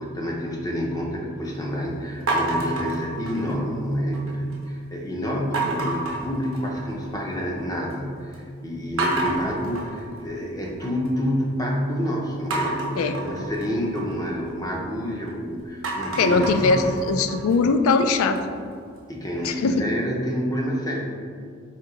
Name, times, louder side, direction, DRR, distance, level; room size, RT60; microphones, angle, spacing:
voice 1, 0.0-16.8 19.1-21.2, equal, 15° left, -1 dB, 0.5 m, -28 dB
sound 1, 2.3-3.8 4.1-4.7 5.5-7.1 7.4-8.0 8.3-8.4 9.0-11.1 12.5-15.3 15.7-18.6, right 2 dB, 75° right, 0.8 m, -30 dB
voice 2, 16.2-18.4 19.4-19.8, left 4 dB, 85° left, 8 dB, 0.3 m, -21 dB
4.3 x 2.7 x 3.8 m, 2.2 s
head